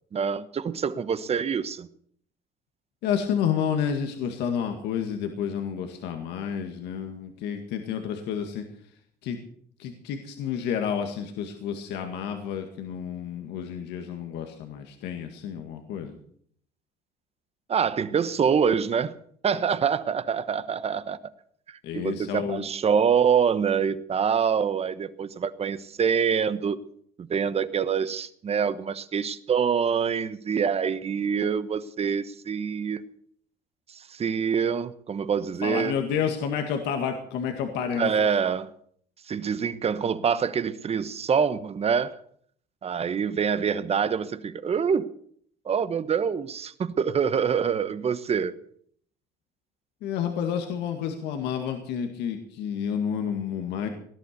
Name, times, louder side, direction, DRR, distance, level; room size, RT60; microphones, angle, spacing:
voice 1, 0.1-1.9 17.7-19.1 19.4-21.2 21.7-26.8 27.2-33.0 33.9-35.9 38.0-38.7 39.3-42.2 42.8-45.1 45.6-48.5, right 7 dB, 35° right, 15 dB, 1.1 m, -25 dB
voice 2, 3.0-8.7 9.2-9.4 9.8-16.2 21.8-22.7 35.6-38.3 50.0-53.9, left 8 dB, 85° left, 5 dB, 2.0 m, -30 dB
18.0 x 11.5 x 6.8 m, 0.63 s
cardioid pair, 110°, 17 cm